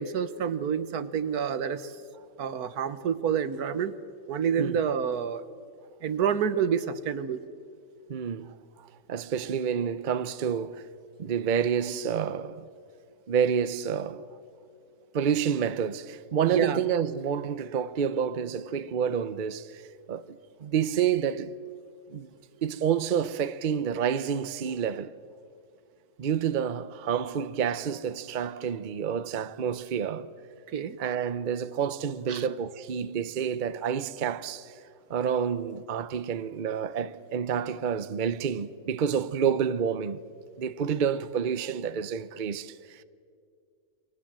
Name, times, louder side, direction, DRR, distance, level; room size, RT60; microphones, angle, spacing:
voice 1, 0.0-1.9 2.4-3.9 4.3-5.4 6.0-7.4 16.4-16.8 30.7-31.0 32.3-32.4, right 7 dB, 80° right, 1.5 m, -28 dB
voice 2, 8.1-8.6 9.1-10.8 11.2-12.7 13.3-14.3 15.1-19.8 20.1-21.5 22.1-22.3 22.6-25.1 26.2-30.3 31.0-34.7 35.1-40.2 40.6-43.0, right 7 dB, 45° right, 0.7 m, -29 dB
29.5 x 23.0 x 7.5 m
omnidirectional pair, 1.6 m